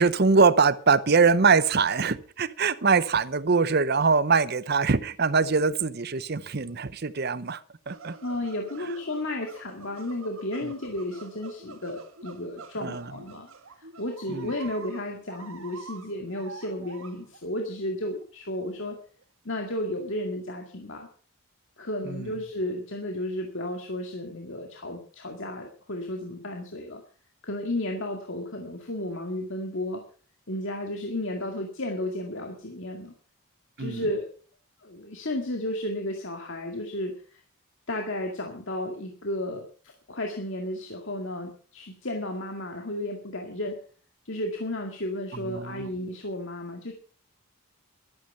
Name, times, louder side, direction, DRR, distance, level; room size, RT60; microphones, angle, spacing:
voice 1, 0.0-8.2 10.6-10.7 12.8-13.1 14.3-14.5 22.0-22.3 33.8-34.0 45.3-45.9, right 4 dB, 45° right, 17 dB, 0.7 m, -23 dB
sound 1, 7.9-17.4 17.7-17.8 18.2-18.3 18.8-18.9 19.2-19.3 19.8-19.9, right 4 dB, 70° right, 1.7 m, -47 dB
voice 2, 8.2-13.5 13.8-19.0 19.5-21.1 21.8-27.0 27.4-30.0 30.5-33.1 33.8-34.3 34.8-37.4 37.9-43.8 44.3-46.9, left 1 dB, 55° left, 2 dB, 2.1 m, -33 dB
13.0 x 12.5 x 5.6 m, 0.42 s
head